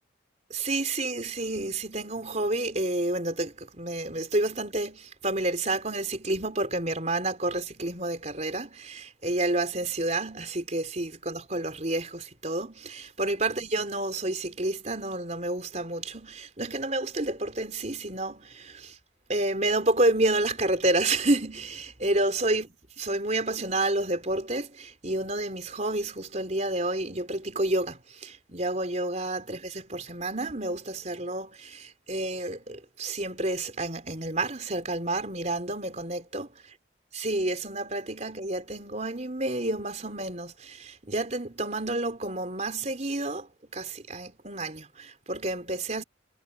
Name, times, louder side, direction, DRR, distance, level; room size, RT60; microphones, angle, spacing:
voice 1, 0.5-19.0 19.3-22.7 23.0-36.5 37.1-46.0, right 2 dB, 35° right, 4.3 m, -29 dB
head